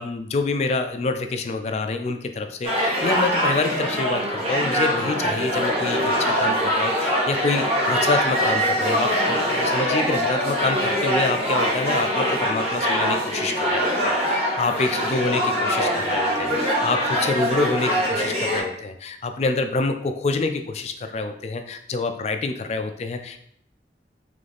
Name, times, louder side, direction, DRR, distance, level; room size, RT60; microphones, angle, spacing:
voice 1, 0.0-23.4, left 3 dB, 35° left, 7 dB, 0.3 m, -27 dB
sound 1, 2.6-18.6, equal, 35° right, 1.4 m, -23 dB
3.4 x 3.2 x 3.9 m, 0.71 s
head